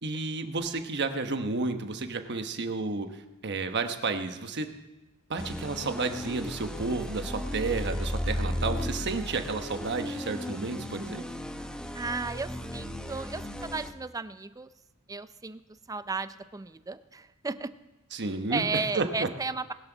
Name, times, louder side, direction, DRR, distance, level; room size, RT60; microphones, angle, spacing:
voice 1, 0.0-4.7 5.3-11.2 18.1-19.3, right 3 dB, 55° right, 7 dB, 1.1 m, -31 dB
sound 1, 5.4-13.9, left 1 dB, 5° left, 0.8 m, -35 dB
voice 2, 11.9-14.7 15.1-15.6 15.9-17.7 18.1-18.2 18.5-19.7, right 4 dB, 15° right, 13 dB, 0.5 m, -34 dB
20.5 x 12.0 x 4.0 m, 1.1 s
head